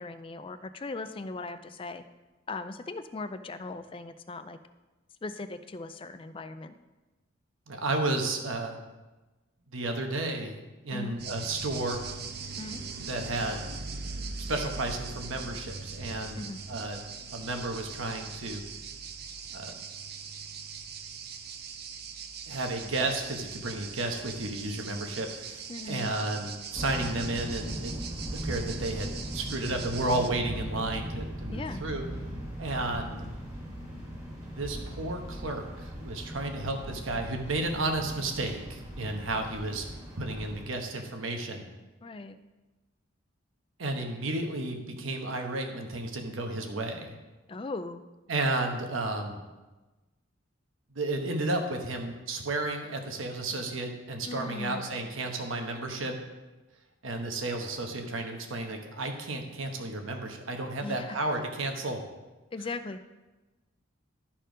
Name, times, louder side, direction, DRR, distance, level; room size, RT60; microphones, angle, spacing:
voice 1, 0.0-2.0 2.5-4.6 5.2-6.8 10.9-11.1 12.6-12.8 16.4-16.6 25.7-26.1 31.5-31.8 42.0-42.4 47.5-48.0 54.3-54.8 60.8-61.2 62.5-63.0, left 3 dB, 25° left, 11 dB, 0.4 m, -38 dB
voice 2, 7.7-8.8 9.7-10.6 10.8-12.0 13.1-13.6 14.5-16.4 16.7-17.0 17.3-18.6 19.5-19.7 22.5-28.0 28.3-32.0 32.6-33.2 34.6-39.8 40.2-41.7 43.8-47.2 48.3-49.4 50.9-56.2 57.0-62.0, right 2 dB, 85° right, 4 dB, 1.1 m, -32 dB
sound 1, 11.2-30.3, right 5 dB, 50° right, 0.6 m, -41 dB
sound 2, 26.7-40.7, equal, 20° right, 1.9 m, -39 dB
12.0 x 4.4 x 5.1 m, 1.2 s
head